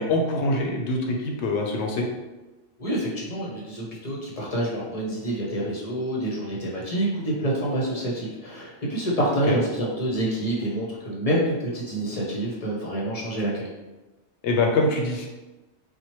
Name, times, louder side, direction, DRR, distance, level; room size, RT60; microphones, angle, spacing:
voice 1, 0.0-2.1 9.5-9.6 14.4-15.3, left 2 dB, 70° left, 1 dB, 0.9 m, -24 dB
voice 2, 2.8-13.7, right 1 dB, 35° left, -4 dB, 0.7 m, -27 dB
4.3 x 2.2 x 3.0 m, 1.1 s
omnidirectional pair, 1.2 m